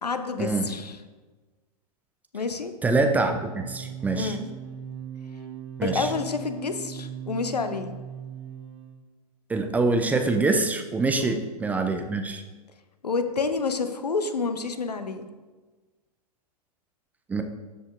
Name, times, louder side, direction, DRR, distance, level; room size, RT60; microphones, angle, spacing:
voice 1, 0.0-1.0 2.3-2.7 4.2-4.5 5.8-7.9 11.3-11.4 13.0-15.3, left 4 dB, 75° left, 9 dB, 0.7 m, -29 dB
voice 2, 2.8-4.3 5.8-6.1 9.5-12.4 17.3-17.4, right 3 dB, 10° right, 5 dB, 0.4 m, -25 dB
sound 1, 3.4-9.0, right 8 dB, 45° right, 0.9 m, -39 dB
12.0 x 5.0 x 2.5 m, 1.3 s
figure-of-eight pair, 105°, 20 cm